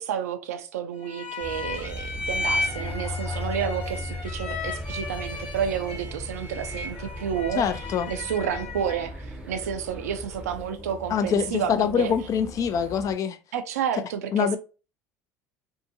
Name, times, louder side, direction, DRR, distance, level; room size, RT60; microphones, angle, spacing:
voice 1, 0.0-7.6 8.1-11.7 12.0-12.1 13.5-14.6, right 8 dB, 90° right, 0.4 m, -30 dB
sound 1, 1.0-9.1, left 3 dB, 75° left, 1.0 m, -34 dB
sound 2, 1.4-13.2, equal, 20° left, 1.2 m, -41 dB
sound 3, 1.5-10.6, left 1 dB, 10° right, 0.6 m, -38 dB
voice 2, 7.6-8.1 11.1-13.4 14.3-14.6, left 7 dB, 45° left, 0.4 m, -24 dB
2.6 x 2.5 x 2.6 m
hypercardioid pair, 85°, 8 cm